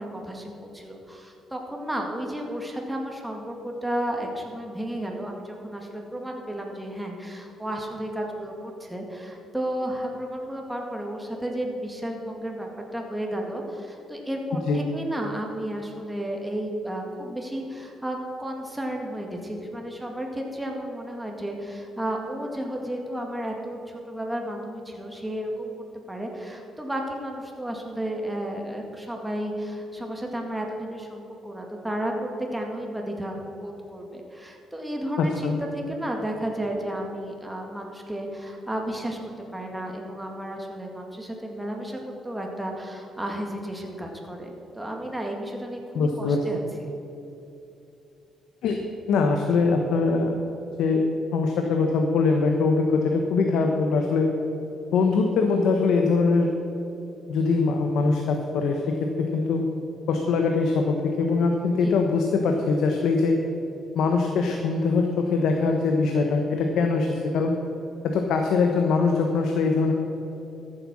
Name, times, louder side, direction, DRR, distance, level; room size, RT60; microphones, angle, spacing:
voice 1, 0.0-25.7 26.1-46.6 61.8-61.9, right 1 dB, 10° right, 1 dB, 2.1 m, -33 dB
voice 2, 35.2-35.6 45.9-46.4 48.6-48.8 49.1-50.3 50.8-51.0 51.3-54.3 54.9-56.5 57.3-59.6 60.1-63.4 63.9-67.6 68.0-69.9, left 4 dB, 80° left, 3 dB, 1.0 m, -22 dB
13.5 x 7.8 x 6.2 m, 3.0 s
cardioid pair, 90°, 0 cm